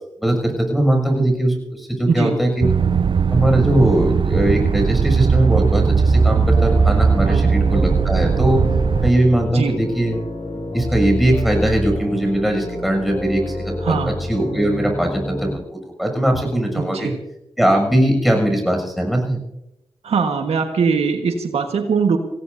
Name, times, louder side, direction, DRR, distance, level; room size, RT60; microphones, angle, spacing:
voice 1, 0.2-2.7 3.3-8.6 9.0-10.1 10.5-13.9 14.3-15.6 16.0-17.1 17.6-19.4, right 1 dB, ahead, 1 dB, 6.9 m, -20 dB
sound 1, 2.6-9.1, right 5 dB, 55° right, 0.6 m, -18 dB
sound 2, 5.9-15.5, left 1 dB, 45° left, 6.5 m, -27 dB
voice 2, 13.8-14.1 16.7-17.1 20.0-22.2, right 5 dB, 90° right, 4 dB, 1.5 m, -21 dB
25.5 x 17.0 x 2.7 m, 0.88 s
cardioid pair, 55°, 10 cm